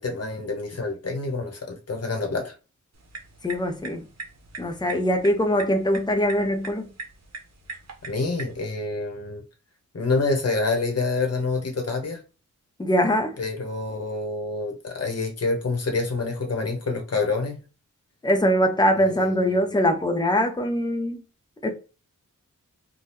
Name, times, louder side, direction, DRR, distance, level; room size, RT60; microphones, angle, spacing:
voice 1, 0.0-2.5 8.0-9.4 9.9-12.2 13.4-17.6 19.1-19.7, left 3 dB, 50° left, 1.0 m, -27 dB
sound 1, 2.9-8.6, right 3 dB, 55° right, 0.8 m, -41 dB
voice 2, 3.4-4.0 4.6-6.9 12.8-13.4 18.2-21.2 21.6-21.7, equal, 15° left, 0.6 m, -22 dB
2.8 x 2.3 x 3.4 m
wide cardioid pair, 110°, 32 cm